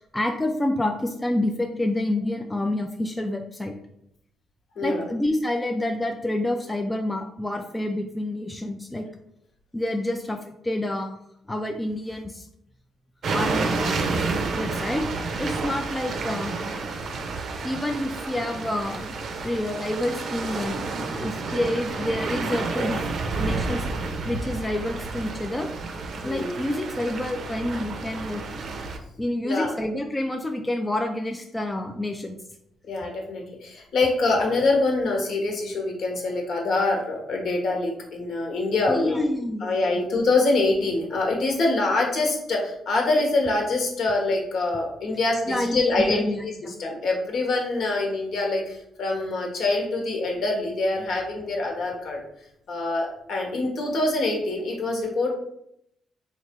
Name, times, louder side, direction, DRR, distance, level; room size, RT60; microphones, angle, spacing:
voice 1, 0.0-3.7 4.8-9.1 9.7-11.2 11.5-12.5 13.3-14.1 14.6-15.0 15.4-16.6 17.6-19.1 19.4-23.0 23.3-25.7 26.2-28.4 29.2-32.4 38.9-40.0 45.5-46.7, left 1 dB, 15° left, 4 dB, 0.4 m, -28 dB
sound 1, 13.2-29.0, right 3 dB, 55° right, 0.5 m, -30 dB
voice 2, 26.2-26.5 29.4-29.7 32.9-39.2 39.6-46.2 46.6-52.2 52.7-55.3, left 2 dB, 65° left, 0 dB, 1.1 m, -25 dB
3.3 x 2.4 x 4.4 m, 0.75 s
cardioid pair, 90°, 0 cm